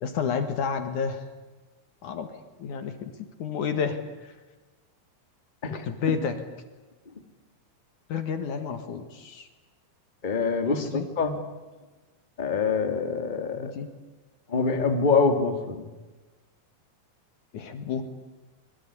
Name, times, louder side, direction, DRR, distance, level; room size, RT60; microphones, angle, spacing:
voice 1, 0.0-1.2 2.0-2.3 2.6-3.1 3.4-4.3 5.7-6.4 8.1-9.5 10.7-11.1 13.6-13.9 17.5-18.0, left 6 dB, 60° left, 8 dB, 2.9 m, -30 dB
voice 2, 10.2-11.4 12.4-13.7 14.5-15.8, left 4 dB, 15° left, 6 dB, 2.0 m, -25 dB
26.0 x 23.5 x 9.8 m, 1.2 s
omnidirectional pair, 4.3 m